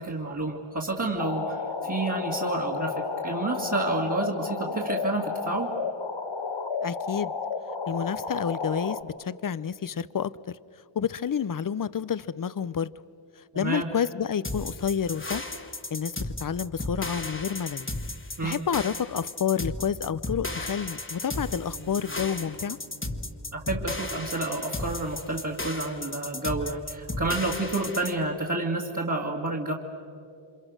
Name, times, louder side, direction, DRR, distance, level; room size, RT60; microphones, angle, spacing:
voice 1, 0.0-5.8 13.5-13.9 18.4-18.6 23.5-29.7, right 2 dB, 35° right, 2.3 m, -29 dB
sound 1, 1.2-9.0, left 4 dB, 60° left, 1.4 m, -32 dB
voice 2, 6.8-7.3 7.9-10.6 11.0-12.9 13.6-15.5 15.9-17.9 18.4-22.8, left 7 dB, 40° left, 0.6 m, -29 dB
sound 2, 14.4-28.2, left 2 dB, 25° left, 1.5 m, -34 dB
sound 3, 21.3-25.6, right 3 dB, 60° right, 4.2 m, -51 dB
29.0 x 26.5 x 6.5 m
wide cardioid pair, 70°, 50 cm